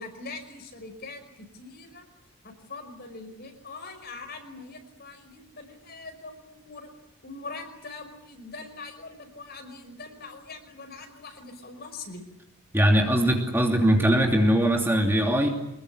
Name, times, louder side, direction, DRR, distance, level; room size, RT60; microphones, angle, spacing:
voice 1, 0.0-2.1 2.4-6.9 7.2-12.2 13.6-13.7, left 3 dB, 45° left, 6 dB, 5.4 m, -42 dB
voice 2, 12.7-15.5, equal, 10° right, 1 dB, 2.8 m, -21 dB
25.5 x 21.5 x 10.0 m, 0.81 s
head